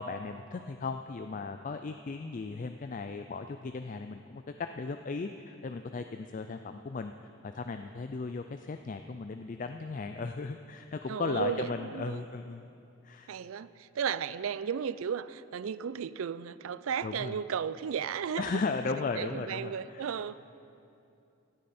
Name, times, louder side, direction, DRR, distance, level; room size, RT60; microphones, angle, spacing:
voice 1, 0.0-4.4 4.8-7.1 7.4-12.7 13.0-13.3 17.0-17.4 18.4-20.3, left 4 dB, 40° left, 7 dB, 0.4 m, -36 dB
voice 2, 11.1-12.2 13.3-18.6 19.2-20.3, right 7 dB, 80° right, 16 dB, 0.4 m, -34 dB
17.0 x 12.5 x 4.3 m, 2.7 s
head